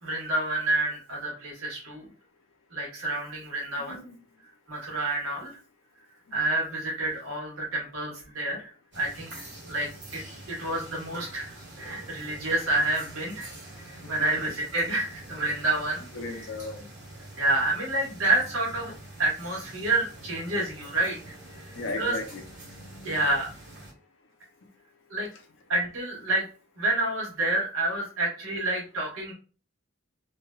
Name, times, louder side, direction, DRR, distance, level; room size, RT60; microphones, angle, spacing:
voice 1, 0.0-2.1 2.7-4.0 4.7-5.5 6.3-9.3 9.7-10.2 10.5-13.5 13.9-16.0 16.3-16.4 17.4-18.9 19.2-22.2 23.0-23.5 25.1-25.3 25.7-26.5 26.8-29.3, right 2 dB, 80° right, 1.5 m, -29 dB
voice 2, 3.8-4.2 14.0-14.3 16.1-16.9 21.5-22.9, left 3 dB, 65° left, 0.6 m, -37 dB
sound 1, 8.9-23.9, right 1 dB, 60° right, 1.4 m, -45 dB
3.2 x 2.8 x 2.3 m
head